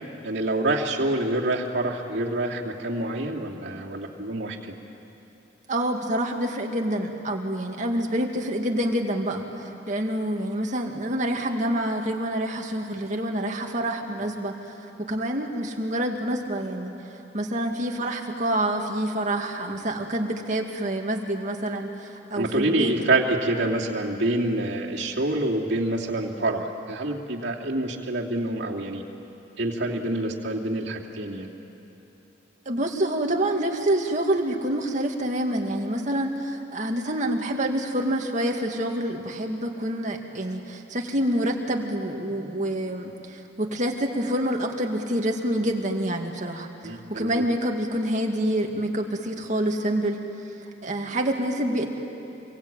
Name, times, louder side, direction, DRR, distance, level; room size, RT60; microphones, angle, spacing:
voice 1, 0.2-4.7 22.3-29.0 29.6-31.5 46.8-47.4, right 2 dB, 60° right, -2 dB, 2.8 m, -27 dB
voice 2, 5.7-16.9 17.3-22.9 32.7-50.2 50.8-51.9, right 1 dB, 40° right, 2 dB, 2.2 m, -27 dB
26.0 x 23.0 x 8.9 m, 2.9 s
head